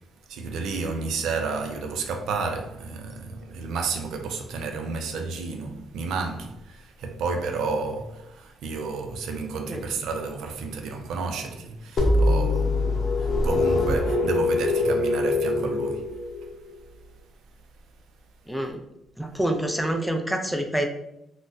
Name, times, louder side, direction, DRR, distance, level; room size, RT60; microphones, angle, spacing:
voice 1, 0.3-16.1, right 4 dB, 80° right, 0.4 m, -31 dB
sound 1, 12.0-16.7, left 2 dB, 50° left, 0.6 m, -23 dB
voice 2, 18.5-18.8 19.2-20.9, right 1 dB, ahead, 0.4 m, -27 dB
3.8 x 2.1 x 2.5 m
cardioid pair, 90°, 0 cm